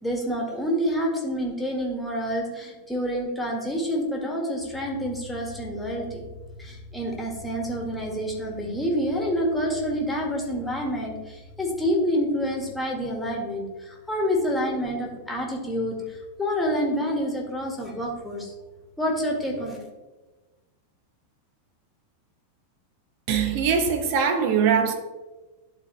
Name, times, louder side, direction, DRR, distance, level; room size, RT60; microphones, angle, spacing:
voice 1, 0.0-6.3 6.6-18.5 19.0-19.8, equal, 5° left, 1.7 m, -28 dB
voice 2, 23.3-24.9, right 6 dB, 45° right, 1.0 m, -22 dB
11.5 x 4.2 x 3.1 m
figure-of-eight pair, 90°, 0 cm